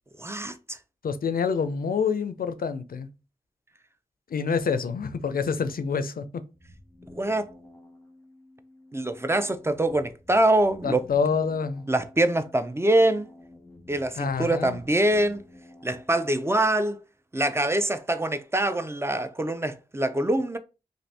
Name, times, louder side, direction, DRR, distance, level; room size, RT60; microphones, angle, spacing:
voice 1, 0.2-0.8 7.1-7.5 8.9-11.1 11.9-13.3 13.9-15.4 15.8-17.0 17.3-20.6, right 1 dB, 15° right, 0.4 m, -24 dB
voice 2, 1.0-3.1 4.3-6.4 10.8-11.8 14.2-14.8, left 5 dB, 90° left, 0.4 m, -27 dB
sound 1, 6.5-16.5, left 2 dB, 10° left, 1.0 m, -51 dB
2.6 x 2.5 x 3.2 m
cardioid pair, 45°, 15 cm